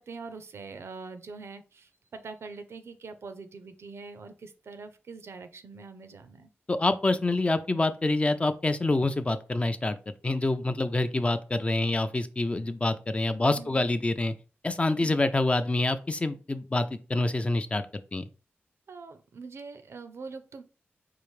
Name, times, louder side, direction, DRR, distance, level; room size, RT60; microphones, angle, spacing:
voice 1, 0.0-6.5 13.4-13.8 15.0-15.2 18.9-20.6, right 4 dB, 80° right, 9 dB, 0.5 m, -43 dB
voice 2, 6.7-10.0 10.2-14.3 14.6-17.8 18.1-18.2, left 2 dB, 30° left, 10 dB, 0.4 m, -26 dB
4.6 x 2.5 x 3.2 m, 0.35 s
wide cardioid pair, 80°, 4 cm